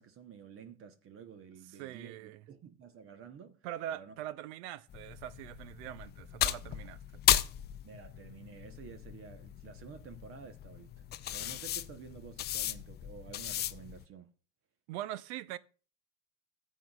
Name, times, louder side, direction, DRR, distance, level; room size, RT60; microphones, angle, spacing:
voice 1, 0.0-4.1 7.8-11.0 11.3-14.3, right 7 dB, 35° right, 0.9 m, -51 dB
voice 2, 1.8-2.4 3.6-7.0 14.9-15.6, right 12 dB, 60° right, 0.6 m, -42 dB
sound 1, 4.9-14.0, left 12 dB, 25° left, 0.4 m, -35 dB
14.5 x 8.1 x 2.4 m
hypercardioid pair, 100°, 38 cm